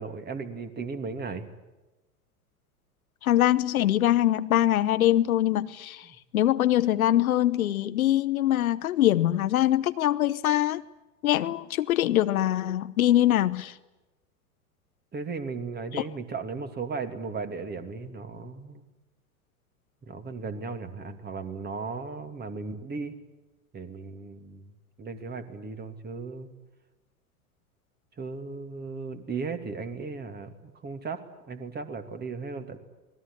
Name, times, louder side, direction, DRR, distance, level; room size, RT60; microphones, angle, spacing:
voice 1, 0.0-1.5 15.1-18.9 20.1-23.1 23.7-24.7 25.0-26.5 28.2-32.8, right 4 dB, 20° right, 8 dB, 2.7 m, -36 dB
voice 2, 3.2-6.1 6.3-10.8 11.2-13.7 15.9-16.0, left 13 dB, 65° left, 14 dB, 1.0 m, -23 dB
27.0 x 20.0 x 9.9 m, 1.1 s
figure-of-eight pair, 90°, 45 cm